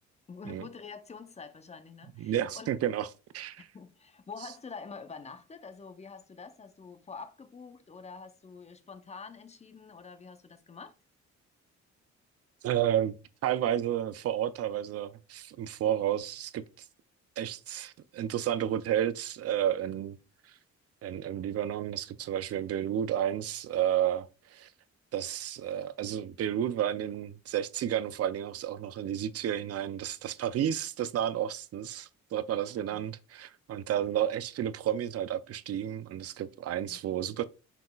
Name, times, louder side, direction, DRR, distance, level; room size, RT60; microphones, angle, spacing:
voice 1, 0.3-2.7 3.7-10.9 32.9-33.1 36.8-37.0, left 5 dB, 20° left, 0.6 m, -46 dB
voice 2, 2.2-3.1 3.3-3.7 12.6-13.2 13.4-16.8 17.4-20.2 21.0-24.7 25.1-37.4, right 10 dB, 55° right, 0.5 m, -31 dB
5.7 x 3.9 x 2.3 m
cardioid pair, 90°, 30 cm